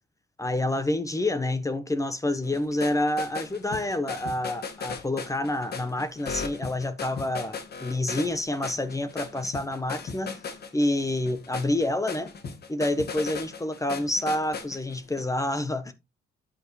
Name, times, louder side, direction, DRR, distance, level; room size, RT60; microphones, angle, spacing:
voice 1, 0.4-10.4 10.7-12.3 12.7-15.9, left 1 dB, 15° left, 1.1 m, -28 dB
sound 1, 2.4-15.2, left 5 dB, 55° left, 1.7 m, -37 dB
8.7 x 7.8 x 3.2 m
cardioid pair, 90°, 20 cm